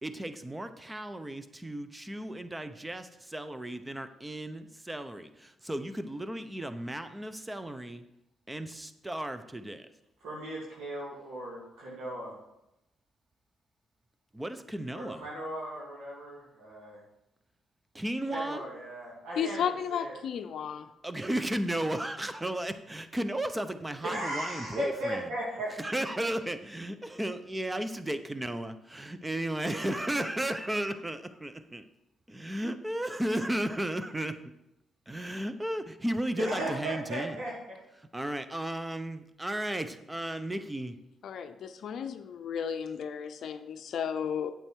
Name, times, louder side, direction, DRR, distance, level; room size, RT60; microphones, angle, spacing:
voice 1, 0.0-8.0 8.5-9.9 14.3-15.3 17.9-18.7 21.0-25.2 25.8-31.8 32.3-34.4 35.1-37.4 38.0-41.0, right 1 dB, 15° right, 10 dB, 0.9 m, -34 dB
voice 2, 10.2-12.3 14.9-17.0 18.3-20.1 24.0-25.7 36.4-37.5, right 1 dB, 80° right, -6 dB, 2.5 m, -36 dB
voice 3, 19.4-20.9 41.2-44.5, left 8 dB, 65° left, 9 dB, 0.5 m, -33 dB
8.7 x 7.6 x 4.6 m, 0.88 s
supercardioid pair, 55°, 0 cm